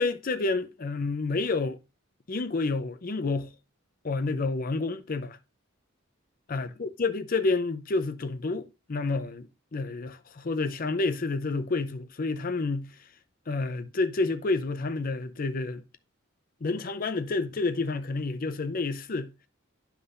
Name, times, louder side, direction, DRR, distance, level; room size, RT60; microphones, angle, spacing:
voice 1, 0.0-1.8 2.3-3.5 4.0-5.4 6.5-12.9 13.5-15.8 16.6-19.3, left 3 dB, 45° left, 0.5 m, -29 dB
9.6 x 5.8 x 2.5 m
head